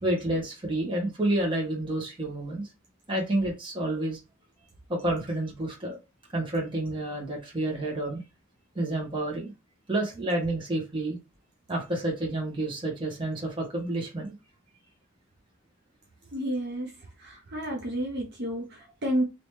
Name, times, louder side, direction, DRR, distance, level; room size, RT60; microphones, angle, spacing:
voice 1, 0.0-2.6 3.1-4.2 4.9-6.0 6.3-8.2 8.7-9.5 9.9-11.2 11.7-14.3, right 1 dB, 25° right, 1.3 m, -29 dB
voice 2, 16.3-16.9 17.2-19.2, equal, 55° right, 0.8 m, -31 dB
3.0 x 2.9 x 3.2 m
head